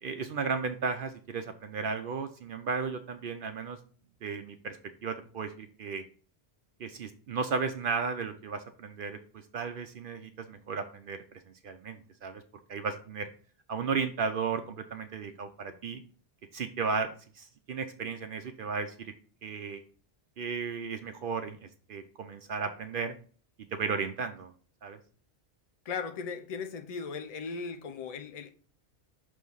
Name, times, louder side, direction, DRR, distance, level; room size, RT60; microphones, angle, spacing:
voice 1, 0.0-3.8 4.2-4.8 5.0-6.0 6.8-11.2 11.6-12.4 12.7-13.3 13.7-16.0 16.5-19.1 19.4-19.8 20.4-23.1 23.7-24.5 24.8-25.0, right 5 dB, 60° right, 0.7 m, -34 dB
voice 2, 25.8-28.5, left 5 dB, 40° left, 0.6 m, -37 dB
6.3 x 3.1 x 5.4 m
omnidirectional pair, 1.1 m